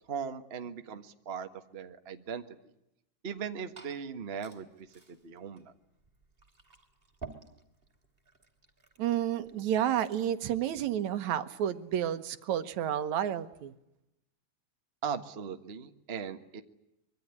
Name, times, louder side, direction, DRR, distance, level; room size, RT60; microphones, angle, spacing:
voice 1, 0.1-2.4 3.2-5.7 15.0-16.6, right 7 dB, 85° right, 7 dB, 0.5 m, -39 dB
Glass / Fill (with liquid), 3.3-10.3, right 4 dB, 15° right, 2.8 m, -54 dB
voice 2, 9.0-13.7, right 10 dB, 65° right, 11 dB, 2.3 m, -30 dB
25.0 x 23.5 x 9.7 m, 0.85 s
omnidirectional pair, 3.8 m